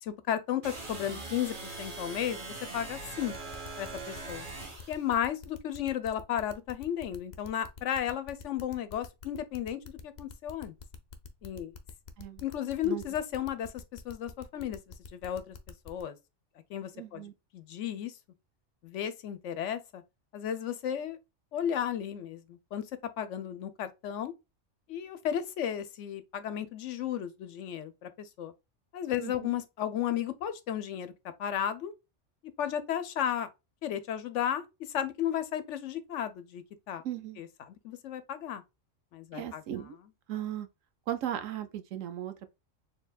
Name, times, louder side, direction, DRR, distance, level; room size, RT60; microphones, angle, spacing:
voice 1, 0.0-3.3 3.8-4.5 4.9-10.7 11.4-11.7 12.4-14.8 15.1-15.6 15.9-16.2 16.7-17.2 17.5-18.1 18.8-20.0 20.3-21.2 21.5-22.8 23.2-24.3 24.9-28.5 28.9-31.1 31.4-31.9 32.6-33.5 33.8-34.7 34.9-37.0 37.4-38.6 39.1-39.6, left 10 dB, 75° left, 1.0 m, -34 dB
sound 1, 0.6-5.0, right 3 dB, 40° right, 1.7 m, -41 dB
sound 2, 3.3-16.0, left 6 dB, 45° left, 0.7 m, -47 dB
voice 2, 16.9-17.3 29.2-29.5 37.0-37.4 39.3-39.9 40.3-40.7 41.1-42.5, right 11 dB, 85° right, 1.1 m, -37 dB
4.5 x 3.4 x 2.3 m
omnidirectional pair, 1.3 m